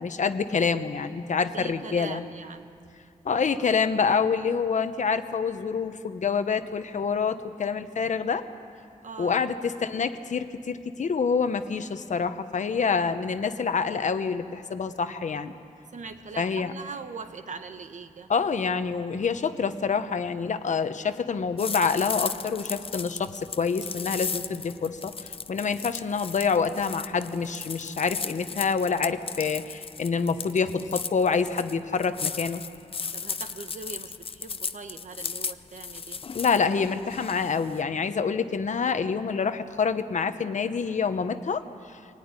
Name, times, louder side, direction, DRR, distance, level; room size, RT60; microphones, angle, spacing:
voice 1, 0.0-2.2 3.2-8.4 9.2-15.5 16.4-16.7 18.3-32.6 36.3-41.6, left 5 dB, 60° left, 9 dB, 1.0 m, -27 dB
voice 2, 1.5-2.7 9.0-9.4 15.9-18.3 33.1-36.2, right 4 dB, 60° right, 8 dB, 1.3 m, -41 dB
sound 1, 21.6-37.8, left 5 dB, 40° left, 0.6 m, -36 dB
24.0 x 18.5 x 9.8 m, 2.5 s
wide cardioid pair, 150°, 14 cm